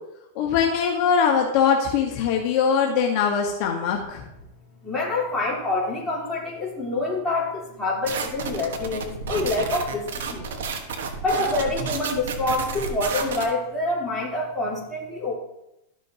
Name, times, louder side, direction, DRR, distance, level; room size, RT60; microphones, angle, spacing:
voice 1, 0.3-4.2, left 7 dB, 50° left, 0 dB, 1.2 m, -22 dB
voice 2, 4.8-10.4 11.2-15.3, left 2 dB, 5° left, -7 dB, 3.3 m, -26 dB
sound 1, 8.1-13.5, right 5 dB, 85° right, 1.3 m, -31 dB
13.0 x 6.3 x 2.8 m, 0.88 s
supercardioid pair, 145°, 0 cm